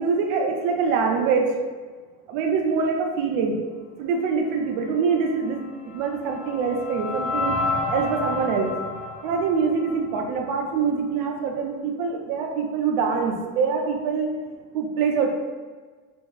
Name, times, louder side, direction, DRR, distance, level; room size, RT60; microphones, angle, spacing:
voice 1, 0.0-1.5 2.3-3.6 4.0-7.5 7.9-8.7 9.2-14.3 14.7-15.3, right 5 dB, 65° right, 3 dB, 0.6 m, -24 dB
sound 1, 5.5-10.7, left 3 dB, 35° left, 0.6 m, -30 dB
2.6 x 2.2 x 2.2 m, 1.4 s
supercardioid pair, 100°, 46 cm